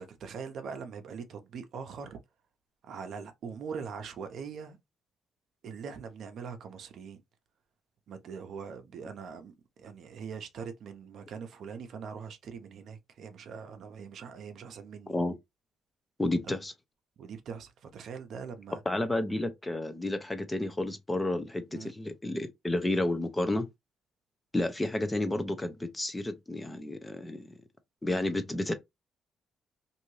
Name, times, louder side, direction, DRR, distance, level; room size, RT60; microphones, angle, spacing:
voice 1, 0.0-2.2 2.8-4.8 5.6-7.2 8.1-15.2 17.2-18.8 21.7-21.9, right 6 dB, 70° right, 0.6 m, -42 dB
voice 2, 16.2-16.7 18.9-23.7 24.5-27.6 28.0-28.7, left 1 dB, 15° left, 0.6 m, -31 dB
2.7 x 2.6 x 3.1 m
cardioid pair, 90°, 0 cm